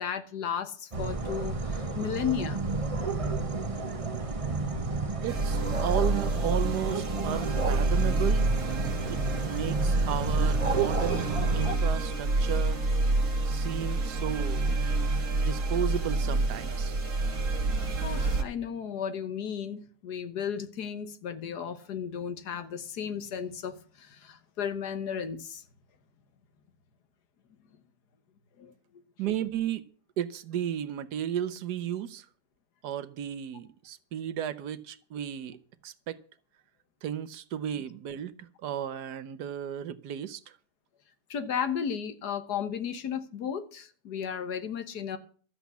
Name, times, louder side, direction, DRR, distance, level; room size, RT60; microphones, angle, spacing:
voice 1, 0.0-2.6 18.0-25.6 28.6-28.7 41.3-45.2, left 7 dB, 80° left, 1.7 m, -34 dB
sound 1, 0.9-11.8, right 3 dB, 25° right, 1.2 m, -32 dB
voice 2, 5.2-8.5 9.0-9.2 9.5-11.3 11.5-12.8 13.4-14.7 15.3-16.9 29.2-29.9 30.2-32.2 32.8-35.6 35.8-36.2 37.0-38.3 38.6-40.4, right 10 dB, 80° right, 1.4 m, -34 dB
sound 2, 5.3-18.4, right 2 dB, 55° right, 1.9 m, -28 dB
12.5 x 8.1 x 8.2 m
omnidirectional pair, 1.7 m